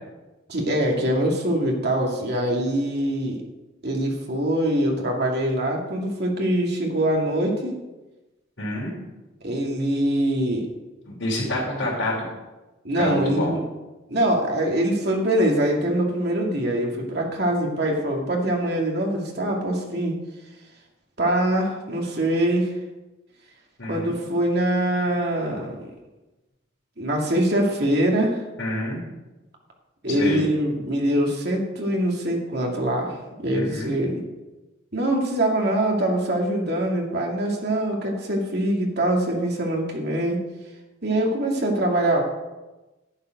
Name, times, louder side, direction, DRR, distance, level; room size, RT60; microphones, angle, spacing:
voice 1, 0.5-3.4 3.8-7.8 9.4-10.7 12.8-13.6 14.1-20.2 21.2-22.7 23.9-25.9 27.0-28.4 30.0-34.2 34.9-40.4 41.0-42.2, right 1 dB, 55° right, 0 dB, 2.3 m, -23 dB
voice 2, 8.6-8.9 11.1-12.3 13.0-13.5 23.8-24.2 28.6-29.0 30.1-30.4 33.5-33.9, left 1 dB, 70° left, -7 dB, 3.3 m, -27 dB
11.5 x 8.9 x 5.1 m, 1.1 s
head